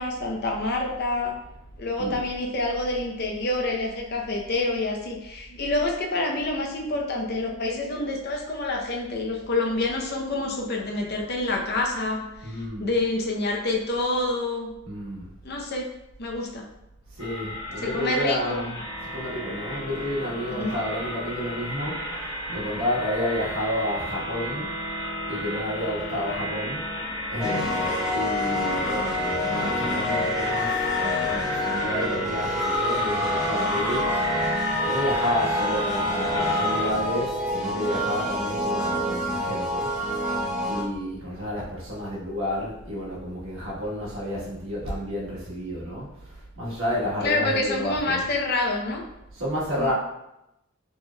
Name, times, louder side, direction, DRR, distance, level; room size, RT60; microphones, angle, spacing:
voice 1, 0.0-1.3 1.8-14.7 15.4-15.9 16.2-16.6 17.8-18.6 20.5-20.7 47.2-49.0 49.7-49.9, left 2 dB, 55° left, 0 dB, 0.6 m, -27 dB
voice 2, 12.4-12.9 14.8-15.3 17.1-24.7 25.3-27.0 27.3-34.1 34.4-39.9 40.7-48.2 49.3-49.9, left 1 dB, 80° right, -5 dB, 1.3 m, -31 dB
sound 1, 17.2-36.9, left 1 dB, 90° left, 0.9 m, -31 dB
sound 2, 27.4-40.8, left 1 dB, 5° right, 0.8 m, -28 dB
4.5 x 3.2 x 2.2 m, 0.87 s
head